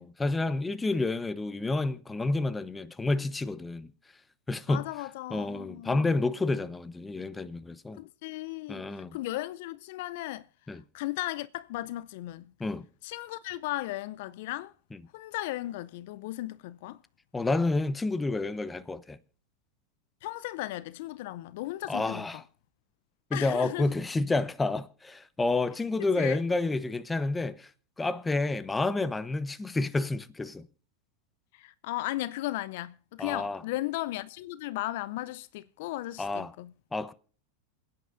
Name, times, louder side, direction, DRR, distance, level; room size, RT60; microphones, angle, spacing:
voice 1, 0.0-3.9 4.5-4.9 5.3-8.0 8.7-9.2 10.7-10.8 12.6-12.8 17.3-19.2 21.9-22.4 23.3-27.7 28.0-30.7 33.2-33.6 36.2-36.5 36.9-37.1, left 3 dB, 15° left, 0.9 m, -29 dB
voice 2, 4.7-6.1 8.0-12.5 13.0-14.7 15.1-17.0 20.2-22.4 23.3-23.9 26.0-26.4 31.5-36.7, left 16 dB, 60° left, 0.5 m, -36 dB
28.0 x 9.5 x 2.5 m
hypercardioid pair, 95°, 0 cm